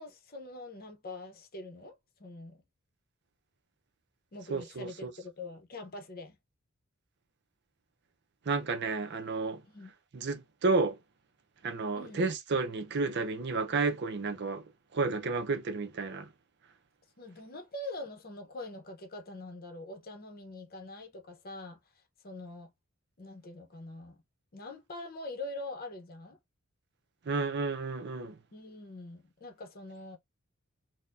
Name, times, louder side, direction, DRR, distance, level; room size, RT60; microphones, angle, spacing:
voice 1, 0.0-2.6 4.3-6.4 9.6-9.9 12.0-12.2 17.2-21.8 22.2-22.7 23.2-24.2 24.5-26.4 28.5-30.2, left 2 dB, 45° left, 0.9 m, -44 dB
voice 2, 4.5-5.1 8.5-9.6 10.1-11.0 11.6-14.6 14.9-16.3 27.3-28.3, right 3 dB, 50° right, 0.5 m, -31 dB
4.0 x 2.2 x 2.6 m
head